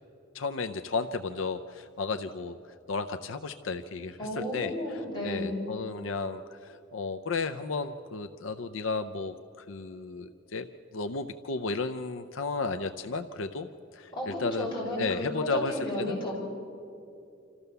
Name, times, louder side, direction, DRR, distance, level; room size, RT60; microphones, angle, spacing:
voice 1, 0.3-10.7 10.9-16.4, left 4 dB, 75° left, 8 dB, 0.6 m, -34 dB
voice 2, 4.2-5.5 14.1-16.4, left 1 dB, 25° left, -5 dB, 6.7 m, -33 dB
26.5 x 14.5 x 6.8 m, 2.6 s
head